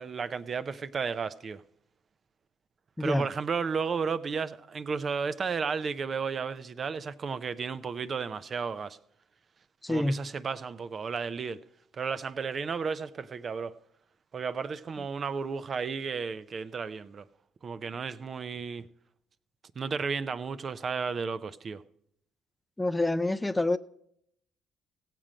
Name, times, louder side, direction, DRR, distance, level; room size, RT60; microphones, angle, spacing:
voice 1, 0.0-1.6 3.0-9.0 9.9-11.6 12.0-13.7 14.3-17.2 17.6-18.8 19.8-21.8, right 5 dB, 45° right, 0.5 m, -33 dB
voice 2, 3.0-3.3 9.8-10.3 22.8-23.8, left 2 dB, 10° left, 0.4 m, -27 dB
16.0 x 7.5 x 5.0 m
supercardioid pair, 70°, 0 cm